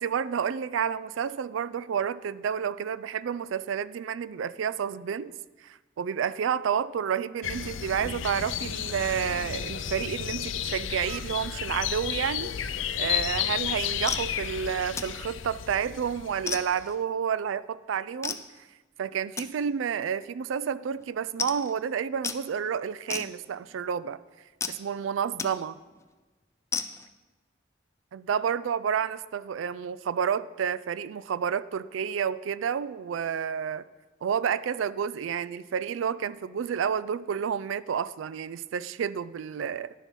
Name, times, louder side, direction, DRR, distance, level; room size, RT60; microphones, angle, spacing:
voice 1, 0.0-5.3 5.6-18.4 19.0-24.2 24.7-25.8 28.3-33.8 34.2-39.9, right 7 dB, 90° right, 17 dB, 0.4 m, -30 dB
sound 1, 7.4-16.8, left 9 dB, 85° left, 0.5 m, -32 dB
sound 2, 14.1-14.3 15.0-15.2 15.7-15.9 16.5-17.0 18.2-18.5 19.4-19.5 20.2-20.3 20.6-20.7 21.0-21.1 21.4-21.7 22.2-22.4 23.1-23.7 24.6-24.8 25.4-25.5 25.9-26.0 26.7-27.1, left 5 dB, 15° left, 0.4 m, -34 dB
11.0 x 7.2 x 5.3 m, 1.3 s
head